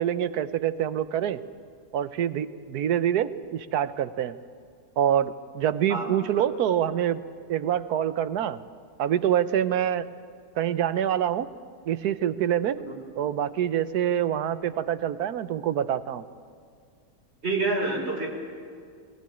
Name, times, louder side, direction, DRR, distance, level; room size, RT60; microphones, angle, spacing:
voice 1, 0.0-1.4 1.9-4.4 5.0-7.2 7.5-8.6 9.0-10.1 10.6-11.5 11.9-12.8 13.2-16.2, right 10 dB, 90° right, 13 dB, 1.4 m, -26 dB
voice 2, 5.9-6.4 12.8-13.0 17.4-18.3, right 3 dB, 45° right, -1 dB, 4.5 m, -28 dB
21.0 x 19.0 x 9.9 m, 2.1 s
omnidirectional pair, 1.6 m